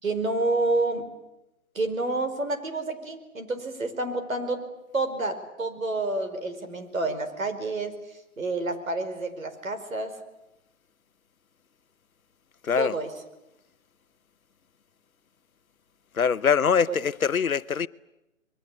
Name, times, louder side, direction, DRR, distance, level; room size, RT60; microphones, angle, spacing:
voice 1, 0.0-1.0 1.7-4.6 4.9-10.1 12.8-13.1 16.9-17.0, right 2 dB, 75° right, 5.1 m, -29 dB
voice 2, 16.2-17.9, left 6 dB, 85° left, 0.9 m, -23 dB
27.0 x 22.5 x 8.6 m
figure-of-eight pair, 150°, 41 cm